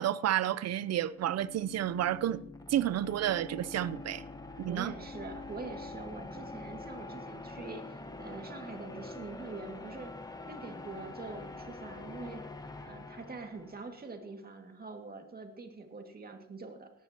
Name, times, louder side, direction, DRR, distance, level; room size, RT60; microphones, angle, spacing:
voice 1, 0.0-2.4 2.7-4.2 4.6-4.9, right 11 dB, 60° right, 0.6 m, -30 dB
sound 1, 0.9-14.1, left 3 dB, 15° left, 1.2 m, -45 dB
voice 2, 4.7-10.1 10.5-12.4 12.8-16.9, right 3 dB, 30° right, 2.1 m, -44 dB
17.5 x 14.0 x 2.9 m
cardioid pair, 90°, 30 cm